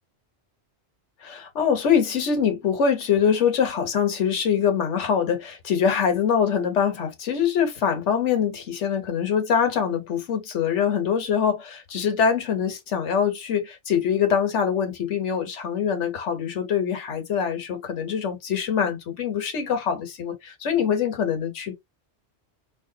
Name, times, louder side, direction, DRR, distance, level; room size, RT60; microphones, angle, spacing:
voice 1, 1.2-21.7, left 7 dB, 80° left, 1.3 m, -24 dB
3.8 x 3.1 x 2.3 m
omnidirectional pair, 1.2 m